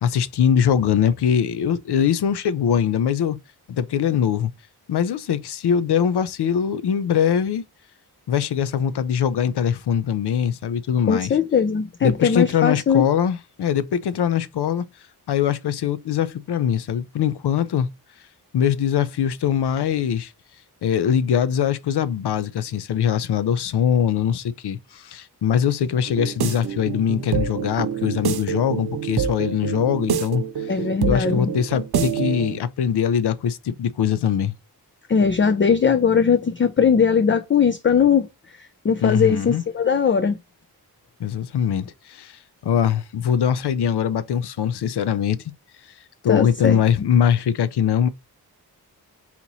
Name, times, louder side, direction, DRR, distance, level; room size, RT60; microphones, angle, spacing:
voice 1, 0.0-3.4 3.7-4.5 4.9-7.6 8.3-11.4 12.0-14.8 15.3-17.9 18.5-20.3 20.8-30.8 31.1-34.5 39.0-39.6 41.2-45.4 46.2-48.1, left 8 dB, 80° left, 0.6 m, -22 dB
voice 2, 11.1-13.1 30.7-31.5 35.1-38.3 38.8-40.4 46.3-46.8, left 6 dB, 30° left, 0.4 m, -19 dB
sound 1, 26.1-32.6, right 7 dB, 75° right, 0.8 m, -26 dB
4.2 x 2.9 x 3.9 m
wide cardioid pair, 110°, 39 cm